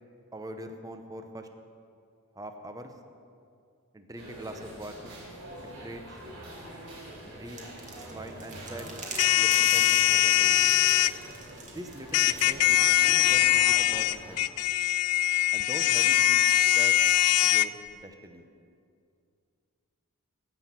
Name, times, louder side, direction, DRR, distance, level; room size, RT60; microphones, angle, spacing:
voice 1, 0.3-1.5 2.3-2.9 3.9-5.1 5.6-6.2 7.2-7.6 8.0-8.9 9.3-10.6 11.6-14.5 15.5-17.0 17.4-18.4, right 1 dB, 15° right, 6 dB, 0.8 m, -43 dB
sound 1, 4.2-14.4, right 1 dB, 60° right, 3.7 m, -45 dB
sound 2, 7.5-12.5, right 3 dB, 35° right, 1.9 m, -41 dB
sound 3, 9.2-11.1 12.1-17.7, left 14 dB, 85° left, 0.4 m, -22 dB
17.0 x 6.1 x 7.4 m, 2.4 s
head